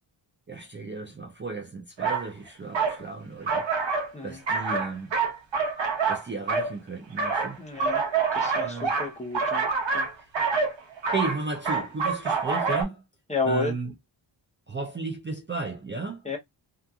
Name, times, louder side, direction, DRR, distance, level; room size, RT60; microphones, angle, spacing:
voice 1, 0.5-3.7 4.2-5.1 6.1-7.6 8.6-8.9 11.1-13.0 13.5-13.9 14.7-16.3, right 3 dB, 25° right, 0.4 m, -34 dB
sound 1, 2.0-2.3 2.7-3.0 3.5-4.1 4.5-6.7 7.2-12.8, right 4 dB, 65° right, 1.0 m, -26 dB
voice 2, 7.6-8.1 8.3-10.1 13.3-13.8 16.2-16.4, left 3 dB, 15° left, 0.7 m, -31 dB
2.8 x 2.4 x 2.3 m
wide cardioid pair, 145°, 48 cm